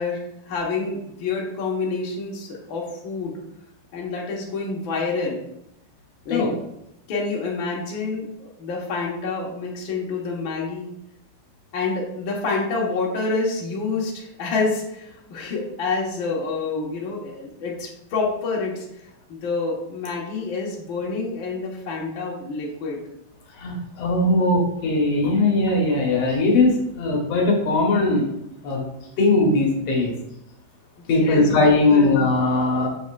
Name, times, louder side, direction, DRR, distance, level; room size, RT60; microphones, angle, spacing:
voice 1, 0.0-3.4 3.9-5.4 6.2-6.5 7.1-10.9 11.7-18.8 19.3-23.0 31.2-32.1, left 4 dB, 90° left, -3 dB, 1.0 m, -28 dB
voice 2, 23.5-28.3 28.6-28.8 29.2-30.1 31.1-32.9, left 2 dB, 65° left, -1 dB, 1.7 m, -19 dB
7.9 x 6.5 x 2.5 m, 0.81 s
omnidirectional pair, 4.5 m